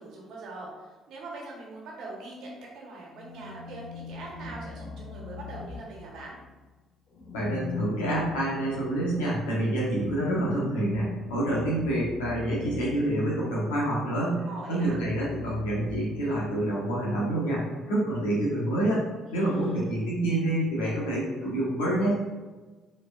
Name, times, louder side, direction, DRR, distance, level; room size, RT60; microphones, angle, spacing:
voice 1, 0.0-6.4 14.4-15.0 19.2-20.0, right 2 dB, 70° right, -2 dB, 1.3 m, -42 dB
sound 1, 3.1-6.5 7.1-13.7 14.7-16.7, left 4 dB, 60° left, 1.0 m, -41 dB
voice 2, 7.3-19.0 19.3-22.2, right 1 dB, 85° left, -5 dB, 1.5 m, -27 dB
4.5 x 4.0 x 2.5 m, 1.3 s
hypercardioid pair, 55°, 0 cm